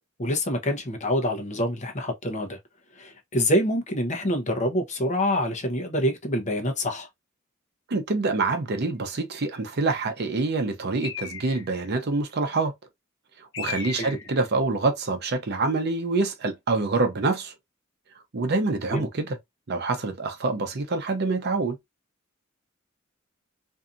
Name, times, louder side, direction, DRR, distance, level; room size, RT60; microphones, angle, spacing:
voice 1, 0.2-2.6 3.0-7.1 14.0-14.2 18.9-19.1, equal, 35° left, 0.7 m, -26 dB
voice 2, 7.9-12.7 13.6-17.5 18.3-19.4 19.7-21.8, right 3 dB, 55° right, 0.6 m, -26 dB
Bird, 11.0-11.9 13.5-14.5, left 7 dB, 70° left, 0.8 m, -36 dB
2.7 x 2.4 x 2.5 m
head